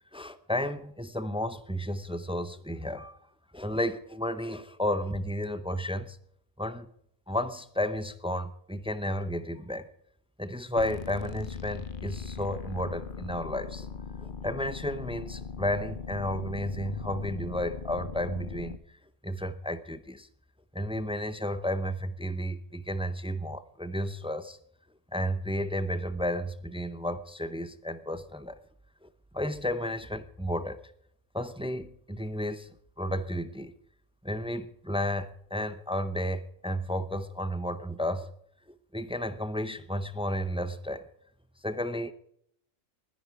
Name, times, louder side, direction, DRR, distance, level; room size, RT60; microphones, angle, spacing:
voice 1, 0.1-3.2 3.5-6.2 6.6-6.9 7.3-9.9 10.4-13.9 14.2-20.3 20.7-24.6 25.1-28.6 29.0-29.1 29.3-30.8 31.3-32.7 33.0-33.7 34.2-38.3 38.9-41.0 41.6-42.1, left 1 dB, 5° right, 12 dB, 0.5 m, -32 dB
sound 1, 10.8-18.8, left 6 dB, 50° left, 0.8 m, -40 dB
20.0 x 10.5 x 4.7 m, 0.70 s
omnidirectional pair, 1.3 m